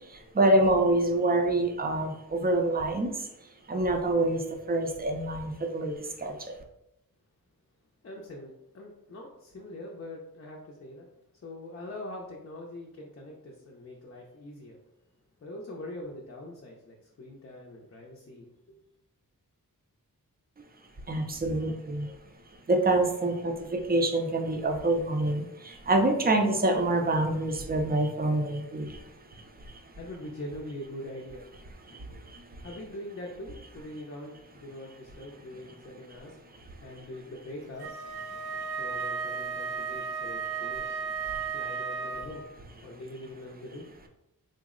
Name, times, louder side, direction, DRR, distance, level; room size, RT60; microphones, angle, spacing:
voice 1, 0.3-3.1 3.7-5.9 6.2-6.3 21.1-22.1 22.7-28.9, right 2 dB, 25° right, 4 dB, 0.4 m, -26 dB
voice 2, 8.0-11.1 11.4-14.8 15.4-18.8 29.9-31.4 32.6-36.4 36.8-38.0 38.8-41.0 41.5-43.9, left 1 dB, 40° left, -1 dB, 0.5 m, -43 dB
Wind instrument woodwind instrument, 37.8-42.5, right 5 dB, 90° right, 0.5 m, -34 dB
3.8 x 2.0 x 3.6 m, 0.87 s
wide cardioid pair, 125°, 37 cm